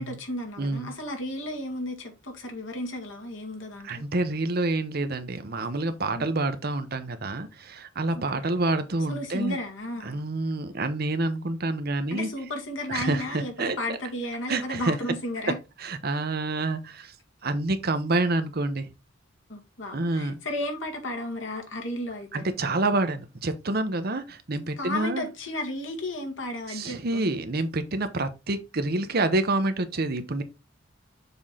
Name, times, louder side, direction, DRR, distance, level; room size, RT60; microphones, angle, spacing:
voice 1, 0.0-4.0 6.1-6.3 8.3-8.4 9.1-10.2 12.1-15.6 19.5-22.5 24.8-27.2, left 1 dB, 85° left, 1.9 m, -33 dB
voice 2, 0.6-0.9 3.8-9.6 10.0-12.3 12.9-14.0 14.5-15.0 15.8-17.1 17.4-18.9 19.9-20.4 22.3-25.3 26.7-30.4, right 2 dB, 55° right, 0.9 m, -28 dB
6.9 x 3.7 x 4.1 m
head